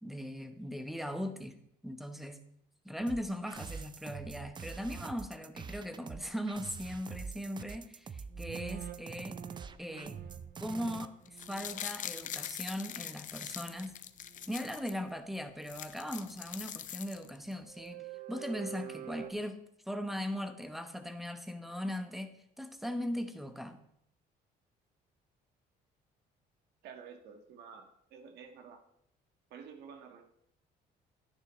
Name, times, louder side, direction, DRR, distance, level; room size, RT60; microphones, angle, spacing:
voice 1, 0.0-1.6 1.8-2.4 2.8-9.4 9.8-10.2 10.6-14.0 14.5-19.6 19.9-23.8, equal, ahead, 8 dB, 0.9 m, -39 dB
sound 1, 3.1-11.1, right 5 dB, 25° right, 0.5 m, -45 dB
sound 2, 8.3-13.9 14.2-14.6 15.0-15.2 17.6-19.3, right 10 dB, 60° right, 1.0 m, -48 dB
sound 3, 11.2-14.9 15.3-15.4 15.6-17.5 17.9-18.0, left 10 dB, 50° left, 0.6 m, -43 dB
voice 2, 26.8-28.8 29.5-30.2, right 6 dB, 75° right, 5 dB, 1.5 m, -50 dB
11.5 x 9.7 x 3.1 m, 0.72 s
cardioid pair, 110°, 17 cm